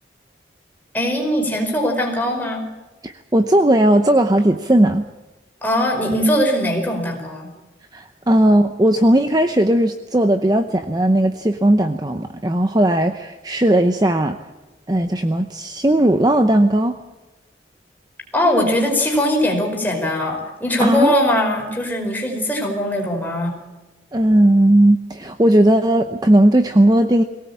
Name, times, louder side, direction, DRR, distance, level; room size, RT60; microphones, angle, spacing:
voice 1, 0.9-2.6 5.6-7.5 18.3-23.6, left 1 dB, 10° left, 0 dB, 4.9 m, -20 dB
voice 2, 3.0-5.1 7.9-14.4 14.9-17.0 20.8-21.1 24.1-27.2, right 1 dB, 20° right, 7 dB, 0.8 m, -16 dB
22.5 x 17.5 x 8.7 m, 1.1 s
head